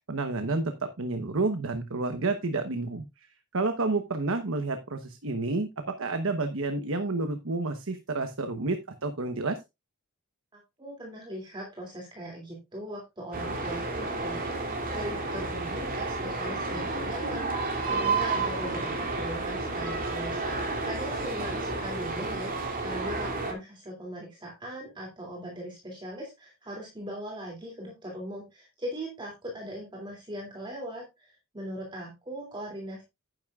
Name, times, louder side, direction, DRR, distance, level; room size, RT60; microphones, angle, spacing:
voice 1, 0.1-3.3 3.5-5.7 6.0-9.6, right 3 dB, 65° right, 7 dB, 1.1 m, -30 dB
voice 2, 10.5-33.0, equal, 20° right, -1 dB, 2.9 m, -40 dB
sound 1, 13.3-23.5, right 3 dB, 40° right, 3.0 m, -31 dB
11.0 x 10.0 x 2.5 m, 0.23 s
head